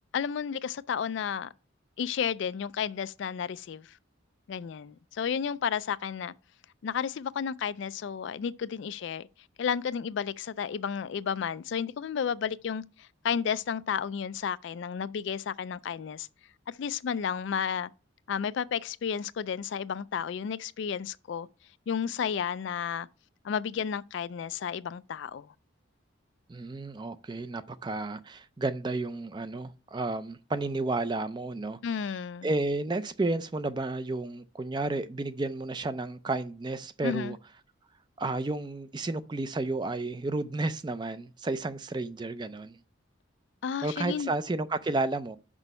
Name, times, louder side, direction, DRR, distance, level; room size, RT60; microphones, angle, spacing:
voice 1, 0.1-1.5 2.0-4.0 4.5-6.3 6.8-9.3 9.6-16.3 16.7-17.9 18.3-21.5 21.9-23.1 23.4-25.5 31.8-32.5 37.0-37.3 43.6-44.3, left 7 dB, 65° left, 0.3 m, -32 dB
voice 2, 26.5-32.0 32.4-37.4 38.2-42.8 43.8-45.4, right 2 dB, 20° right, 0.4 m, -32 dB
6.1 x 5.4 x 5.3 m
head